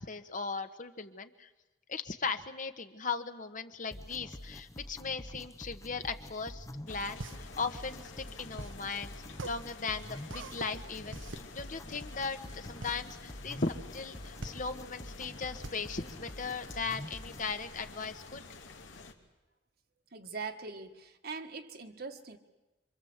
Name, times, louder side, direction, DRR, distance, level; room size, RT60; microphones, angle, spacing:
voice 1, 0.0-1.5 1.9-9.1 9.4-18.4, left 4 dB, 45° left, 8 dB, 1.3 m, -38 dB
sound 1, 3.9-17.5, left 1 dB, 15° left, 0.8 m, -47 dB
sound 2, 6.9-19.1, left 3 dB, 85° left, 2.6 m, -50 dB
sound 3, 7.2-17.1, right 2 dB, 90° right, 1.3 m, -45 dB
voice 2, 20.1-22.4, right 4 dB, 55° right, 5 dB, 1.7 m, -42 dB
26.5 x 25.5 x 8.1 m, 1.1 s
head